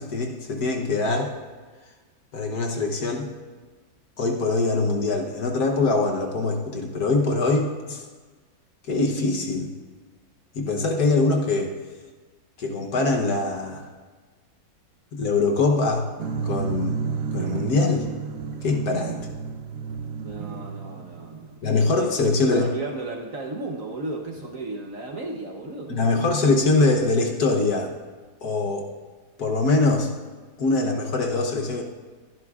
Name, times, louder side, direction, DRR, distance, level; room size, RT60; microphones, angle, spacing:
voice 1, 0.0-1.3 2.3-3.3 4.2-8.0 8.9-9.7 10.5-11.7 12.6-13.9 15.1-16.1 16.4-17.0 17.3-18.1 18.6-19.2 21.6-22.7 25.9-27.9 28.4-28.9 29.4-30.1 30.6-31.8, left 3 dB, 60° left, 2 dB, 1.4 m, -23 dB
sound 1, 16.2-21.6, right 6 dB, 80° right, 0.7 m, -31 dB
voice 2, 20.2-26.1, right 2 dB, 50° right, 1 dB, 1.1 m, -35 dB
22.5 x 11.0 x 2.4 m, 1.4 s
omnidirectional pair, 2.1 m